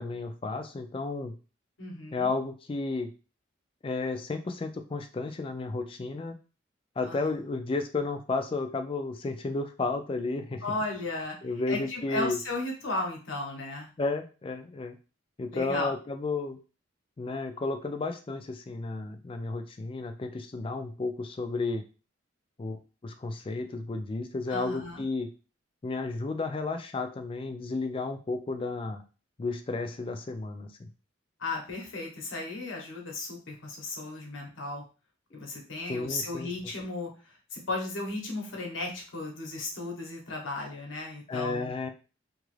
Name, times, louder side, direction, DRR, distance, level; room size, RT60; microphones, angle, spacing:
voice 1, 0.0-1.3 2.1-3.1 3.8-6.4 7.0-10.6 11.4-12.4 14.0-15.0 15.4-16.6 17.2-21.8 22.6-25.3 25.8-29.0 29.4-30.9 35.3-35.4 35.9-36.5 41.3-41.9, left 3 dB, 30° left, 7 dB, 0.3 m, -32 dB
voice 2, 1.8-2.3 7.0-7.3 10.6-11.4 11.7-13.9 15.5-15.9 24.5-25.0 31.4-34.8 35.3-41.7, left 2 dB, 85° left, 1 dB, 1.0 m, -35 dB
2.9 x 2.4 x 3.1 m, 0.34 s
head